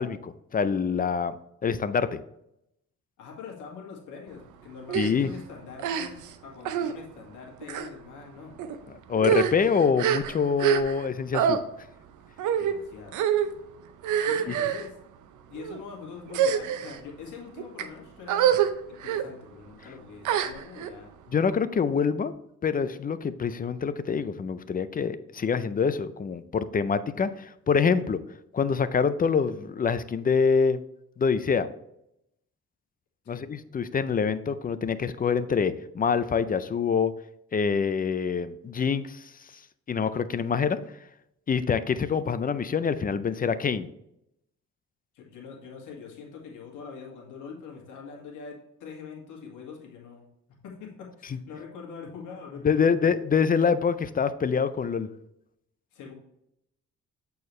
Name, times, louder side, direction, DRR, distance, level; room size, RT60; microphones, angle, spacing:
voice 1, 0.0-1.3 1.6-2.2 4.9-5.3 9.1-11.6 14.5-14.6 21.3-22.3 22.6-28.2 28.5-30.8 31.2-31.7 33.3-37.2 37.5-39.2 39.9-40.8 41.5-43.9 52.6-55.1, left 6 dB, 30° left, 13 dB, 0.5 m, -25 dB
voice 2, 3.2-8.5 12.6-13.2 14.2-15.0 15.5-18.6 18.9-21.1 33.2-33.4 45.1-50.3 50.6-52.9 55.9-56.1, left 6 dB, 90° left, -1 dB, 2.1 m, -43 dB
sound 1, 4.9-5.1 5.8-6.3 6.6-6.9 7.6-7.9 8.6-8.8 9.1-11.1 11.3-11.6 12.4-12.7 13.1-13.5 14.0-14.9 15.5-15.8 16.3-17.0 17.6-17.8 18.3-18.7 19.0-19.2 20.2-20.9, right 9 dB, 80° right, 0.7 m, -26 dB
8.3 x 4.6 x 3.2 m, 0.80 s
cardioid pair, 90°, 30 cm